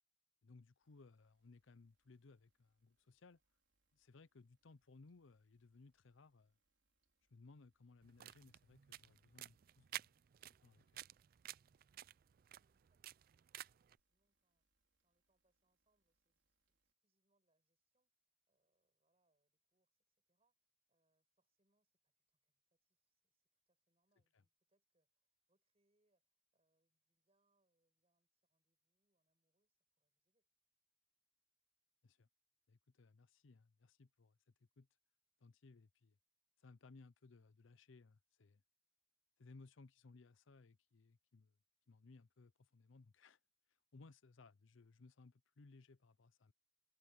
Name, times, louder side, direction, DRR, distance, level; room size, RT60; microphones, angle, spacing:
voice 1, 0.4-3.4 3.9-6.5 7.3-10.1 10.6-11.0 32.0-32.3 32.7-34.9 35.4-36.2 36.6-38.6 39.4-41.6 41.9-43.4 43.9-46.5, left 3 dB, 90° left, 0.7 m, -63 dB
sound 1, 0.8-16.9, right 2 dB, 70° right, 4.9 m, -91 dB
sound 2, 8.0-14.0, right 13 dB, 50° right, 0.3 m, -53 dB
voice 2, 11.9-13.7 14.1-30.5, right 2 dB, 35° right, 6.2 m, -89 dB
head